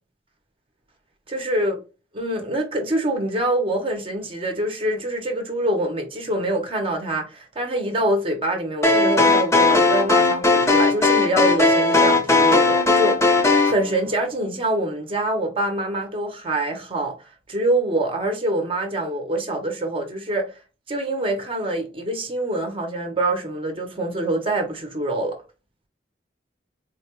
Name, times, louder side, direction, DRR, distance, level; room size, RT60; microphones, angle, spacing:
voice 1, 1.3-1.8 2.2-17.2 17.5-20.6 20.9-25.4, right 1 dB, 30° right, 0.8 m, -25 dB
sound 1, 8.8-13.8, left 3 dB, 15° left, 0.6 m, -17 dB
4.0 x 2.3 x 2.9 m
head